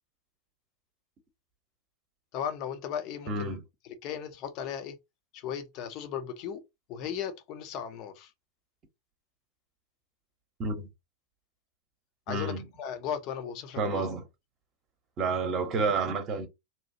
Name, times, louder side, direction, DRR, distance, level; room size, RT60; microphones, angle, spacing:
voice 1, 2.3-3.6 4.0-5.0 5.3-6.6 6.9-8.3 12.3-14.1, left 8 dB, 40° left, 0.6 m, -36 dB
voice 2, 3.3-3.6 10.6-10.9 12.3-12.7 13.8-14.2 15.2-16.5, right 3 dB, 30° right, 0.8 m, -29 dB
2.8 x 2.3 x 2.7 m
figure-of-eight pair, 90°, 0 cm